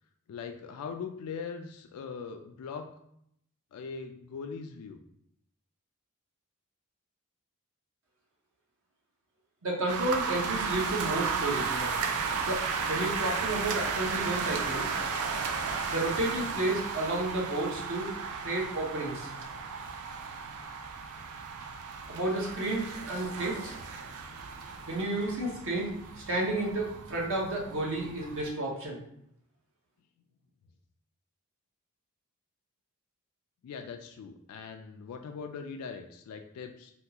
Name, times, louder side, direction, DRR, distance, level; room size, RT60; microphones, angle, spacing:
voice 1, 0.3-2.9 3.7-5.0 33.6-36.9, left 5 dB, 80° left, 5 dB, 0.3 m, -41 dB
voice 2, 9.6-11.9 12.4-12.6 12.9-14.9 15.9-18.1 18.4-19.3 22.1-23.7 24.9-29.0, right 2 dB, 60° right, -2 dB, 0.8 m, -31 dB
sound 1, 9.9-28.5, right 5 dB, 75° right, 0.4 m, -34 dB
3.4 x 2.3 x 2.8 m, 0.73 s
head